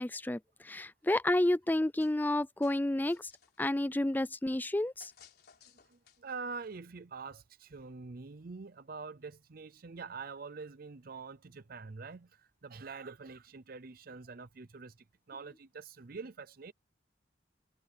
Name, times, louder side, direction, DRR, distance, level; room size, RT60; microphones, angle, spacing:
voice 1, 0.0-3.3 3.6-5.1, left 1 dB, 10° left, 0.4 m, -30 dB
sound 1, 2.0-2.3 2.6-3.7 5.0-6.4, left 7 dB, 55° left, 4.1 m, -60 dB
voice 2, 5.8-15.0 15.3-16.7, right 4 dB, 55° right, 0.6 m, -45 dB
head